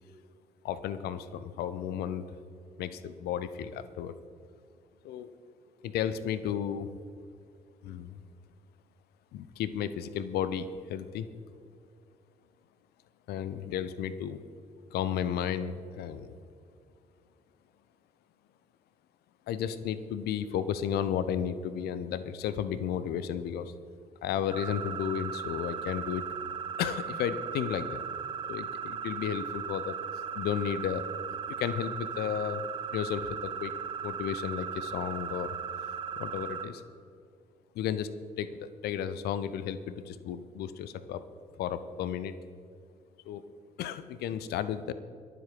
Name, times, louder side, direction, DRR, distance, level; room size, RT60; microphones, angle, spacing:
voice 1, 0.6-2.2 2.8-4.1 5.0-5.3 5.8-6.9 7.8-8.2 9.3-11.3 13.3-14.4 14.9-16.4 19.5-23.7 24.2-26.2 26.8-28.0 28.5-30.0 30.3-31.1 31.6-32.6 32.9-33.7 34.0-35.5 36.2-36.8 37.7-38.1 38.4-41.2 41.6-42.3 43.3-43.4 43.8-44.9, left 9 dB, 55° left, 14 dB, 0.8 m, -33 dB
sound 1, 24.5-36.6, right 7 dB, 25° right, 1.5 m, -37 dB
23.0 x 7.7 x 4.9 m, 2.3 s
figure-of-eight pair, 45°, 19 cm